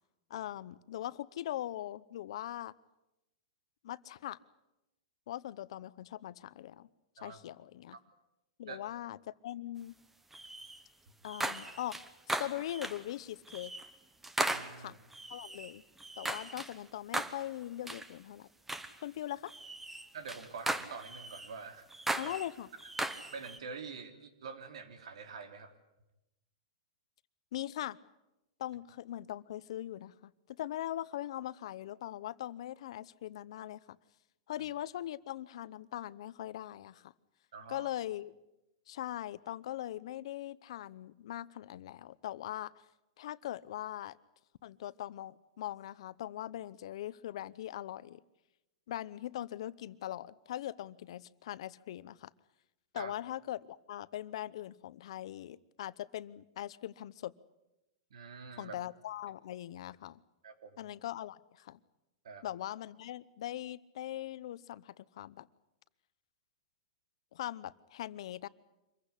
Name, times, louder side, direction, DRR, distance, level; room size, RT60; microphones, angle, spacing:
voice 1, 0.3-2.7 3.8-4.4 5.3-6.9 7.2-8.0 8.6-10.0 11.2-12.0 12.4-13.7 14.8-15.0 15.3-15.8 16.2-18.5 19.0-19.5 22.2-22.7 27.5-28.0 28.6-34.0 34.5-37.1 37.7-38.3 38.9-42.7 43.2-44.2 44.6-48.2 48.9-52.3 52.9-57.3 58.6-60.2 60.8-61.8 62.4-65.5 67.3-68.5, left 13 dB, 65° left, 18 dB, 0.8 m, -41 dB
sound 1, 10.3-10.8 11.2-13.1 13.5-13.9 14.2-16.8 17.1-17.5 17.9-18.1 18.7-19.0 19.5-21.5 21.9-23.6, right 2 dB, 5° right, 1.0 m, -38 dB
voice 2, 14.5-15.0 20.1-21.9 22.2-22.3 23.1-25.7 37.5-37.9 52.9-53.1 58.1-58.7 60.4-60.7 62.2-62.4, right 5 dB, 85° right, 8 dB, 3.3 m, -46 dB
25.0 x 15.5 x 10.0 m, 0.95 s
hypercardioid pair, 150°, 3 cm